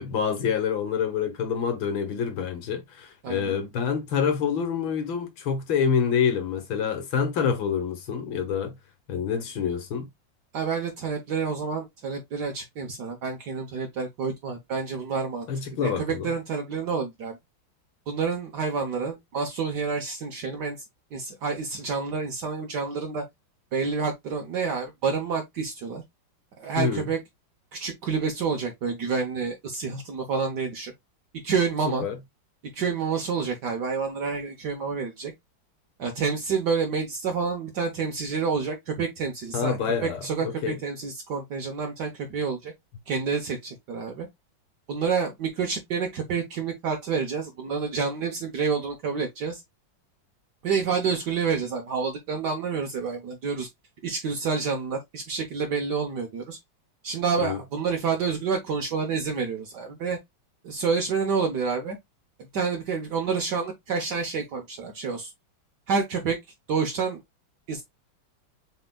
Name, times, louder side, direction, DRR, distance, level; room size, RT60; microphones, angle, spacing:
voice 1, 0.0-8.8 9.1-10.1 15.5-16.3 26.8-27.0 31.9-32.2 39.5-40.8 57.4-57.6, left 7 dB, 85° left, 1.9 m, -27 dB
voice 2, 3.2-3.5 10.5-15.5 15.8-17.4 18.1-20.8 21.1-23.2 23.7-26.0 26.6-27.2 27.7-30.9 31.4-32.1 32.7-35.3 36.0-42.7 43.1-44.3 44.9-49.6 50.6-53.7 54.0-56.6 57.0-60.2 60.6-62.0 62.5-65.3 65.9-66.4 66.7-67.2 67.7-67.8, right 5 dB, 65° right, 1.4 m, -28 dB
6.7 x 3.5 x 2.2 m
omnidirectional pair, 2.1 m